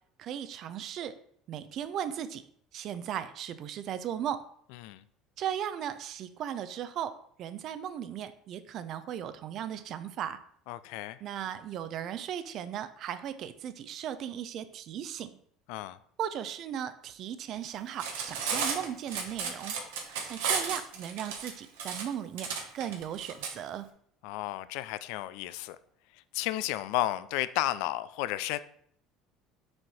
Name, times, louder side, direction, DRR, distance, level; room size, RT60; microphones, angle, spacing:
voice 1, 0.2-1.1 1.5-2.4 2.7-4.4 5.4-10.4 11.2-15.3 16.2-19.7 20.3-23.9, right 9 dB, 55° right, 0.6 m, -37 dB
voice 2, 10.7-11.2 15.7-16.0 24.2-25.8 26.3-28.6, left 15 dB, 75° left, 0.4 m, -32 dB
Cutlery silverware, 17.9-23.5, right 6 dB, 85° right, 1.2 m, -33 dB
6.4 x 4.7 x 4.3 m
supercardioid pair, 85°, 0 cm